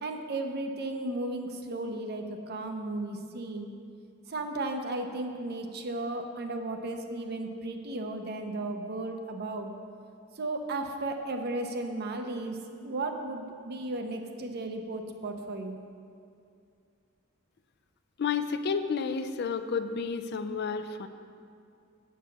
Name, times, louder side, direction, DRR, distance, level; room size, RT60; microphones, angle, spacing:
voice 1, 0.0-3.7 4.3-9.7 10.4-12.6 12.8-15.8, right 2 dB, 50° right, 5 dB, 0.7 m, -35 dB
voice 2, 18.2-21.1, left 5 dB, 55° left, 10 dB, 0.4 m, -31 dB
8.1 x 4.7 x 7.1 m, 2.4 s
head